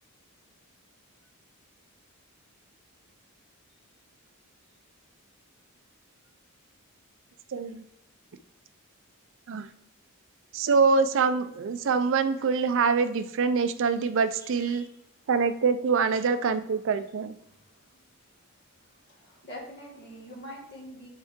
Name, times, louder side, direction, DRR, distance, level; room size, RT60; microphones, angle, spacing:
voice 1, 7.5-7.8 9.5-9.7 10.5-14.9 15.3-17.4, right 5 dB, 60° right, 12 dB, 0.4 m, -25 dB
voice 2, 14.4-14.9 16.1-16.2 17.4-18.0 18.4-18.5 18.8-21.1, equal, 50° left, -2 dB, 2.1 m, -46 dB
7.3 x 4.4 x 3.6 m, 0.80 s
head